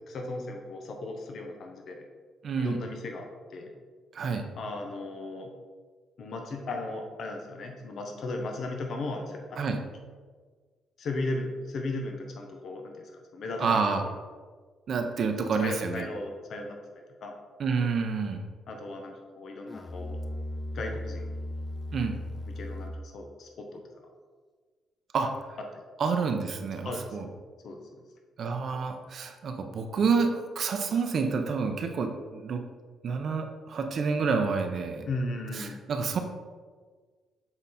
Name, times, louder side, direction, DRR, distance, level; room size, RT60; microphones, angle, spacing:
voice 1, 0.1-2.0 2.6-3.3 3.5-3.7 4.6-5.5 6.2-9.7 11.0-13.0 13.3-14.0 15.6-16.8 17.2-17.4 18.7-20.2 20.7-21.3 22.5-23.8 26.8-27.2 27.6-27.8 35.1-35.8, left 2 dB, 60° left, 3 dB, 0.9 m, -36 dB
voice 2, 2.4-2.8 4.1-4.5 9.6-9.8 13.6-14.0 14.9-16.1 17.6-18.4 21.9-22.1 25.1-25.6 26.0-27.3 28.4-32.6 33.0-35.1 35.5-36.2, right 5 dB, 60° right, 5 dB, 0.7 m, -28 dB
Musical instrument, 19.7-23.2, left 1 dB, 25° left, 0.4 m, -37 dB
7.3 x 3.9 x 4.2 m, 1.5 s
cardioid pair, 90°, 0 cm